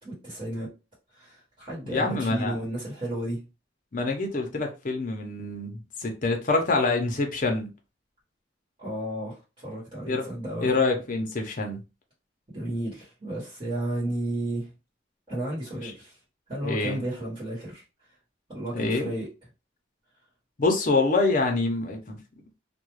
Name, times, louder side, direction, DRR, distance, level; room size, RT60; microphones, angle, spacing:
voice 1, 0.0-0.7 1.1-3.5 8.8-10.7 12.5-14.7 15.3-16.2 16.5-17.8 18.5-19.3, right 1 dB, 25° right, 1.2 m, -33 dB
voice 2, 1.8-2.6 3.9-7.7 10.1-10.3 10.6-11.8 15.8-15.9 16.6-17.0 18.7-19.1 20.6-22.2, left 3 dB, 45° left, 0.6 m, -26 dB
2.3 x 2.2 x 3.0 m
head